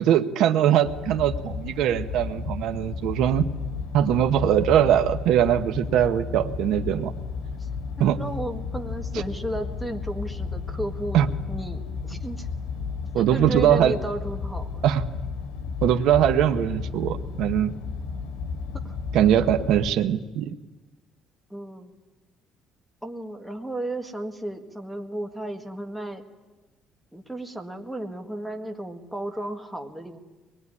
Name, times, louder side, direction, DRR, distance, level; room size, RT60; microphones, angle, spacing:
voice 1, 0.0-3.5 3.9-7.1 8.0-8.2 9.1-9.2 11.1-11.3 13.1-13.9 14.8-15.0 15.8-17.7 19.1-20.5, right 10 dB, 70° right, 8 dB, 1.0 m, -21 dB
sound 1, 0.8-19.9, left 5 dB, 90° left, 2.2 m, -33 dB
voice 2, 8.0-12.5 13.2-14.8 18.8-19.0 21.5-22.0 23.0-26.2 27.1-30.2, right 1 dB, 5° right, 4 dB, 1.7 m, -34 dB
23.0 x 20.5 x 9.8 m, 1.2 s
cardioid pair, 155°, 0 cm